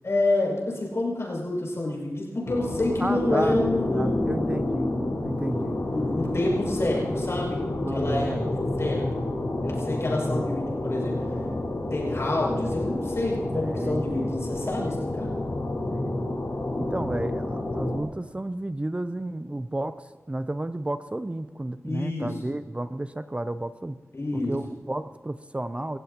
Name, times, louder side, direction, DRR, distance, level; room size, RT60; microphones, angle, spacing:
voice 1, 0.0-5.0 5.4-7.6 7.9-8.3 8.8-9.2 9.6-11.5 11.9-15.3 21.8-22.4 24.1-24.5, left 2 dB, 55° left, -3 dB, 6.5 m, -28 dB
sound 1, 2.4-18.0, left 2 dB, 80° left, 4.5 m, -29 dB
voice 2, 3.0-3.6 3.9-4.9 5.2-5.8 7.8-8.6 10.3-10.5 13.5-14.5 15.9-16.3 16.8-24.0 24.3-26.0, right 1 dB, 20° right, 11 dB, 0.5 m, -32 dB
28.5 x 15.0 x 2.9 m, 1.2 s
wide cardioid pair, 90°, 5 cm